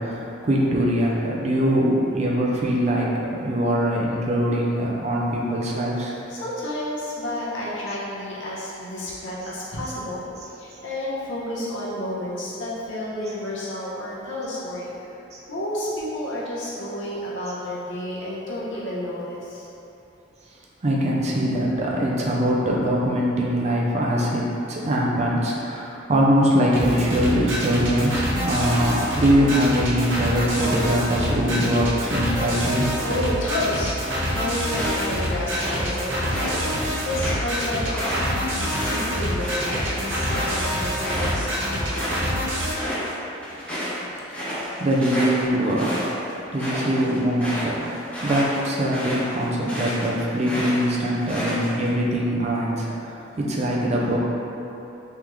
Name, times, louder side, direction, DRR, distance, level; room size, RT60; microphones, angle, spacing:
voice 1, 0.0-6.1 15.3-15.4 20.8-32.9 44.4-46.1 46.5-54.2, equal, 35° right, -4 dB, 0.5 m, -22 dB
voice 2, 6.3-14.9 15.5-19.7 33.0-38.3 38.5-42.2, left 1 dB, 70° left, -7 dB, 0.9 m, -31 dB
sound 1, 26.7-42.7, equal, 70° right, 0.8 m, -26 dB
sound 2, 34.8-36.6 37.0-42.3 42.6-43.1 43.4-50.1 50.4-51.9, equal, 5° left, 0.7 m, -31 dB
3.6 x 3.4 x 3.0 m, 3.0 s
head